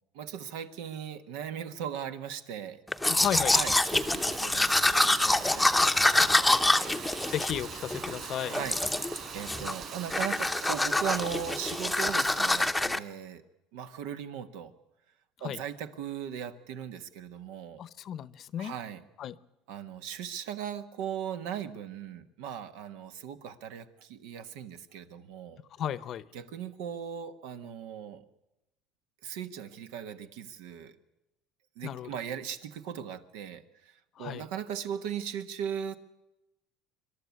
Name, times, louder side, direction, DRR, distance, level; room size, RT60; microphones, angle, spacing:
voice 1, 0.1-2.8 3.5-6.9 8.5-8.8 9.3-13.4 13.7-14.7 15.4-17.8 18.6-19.0 19.7-25.6 26.3-28.2 29.2-31.0 31.8-33.9 34.2-35.9, right 8 dB, 85° right, 9 dB, 1.5 m, -38 dB
Domestic sounds home sounds, 2.9-8.1 8.5-9.2 9.5-9.8 10.1-13.0, left 2 dB, 5° left, 0.7 m, -26 dB
voice 2, 3.1-3.6 6.2-6.3 7.3-8.6 15.4-15.6 17.8-18.8 19.2-19.4 25.8-26.2 31.8-32.1 34.2-34.4, left 10 dB, 45° left, 18 dB, 0.7 m, -34 dB
Rain, 3.2-12.7, right 6 dB, 45° right, 6.0 m, -42 dB
26.5 x 12.0 x 9.5 m, 0.95 s
cardioid pair, 125°, 0 cm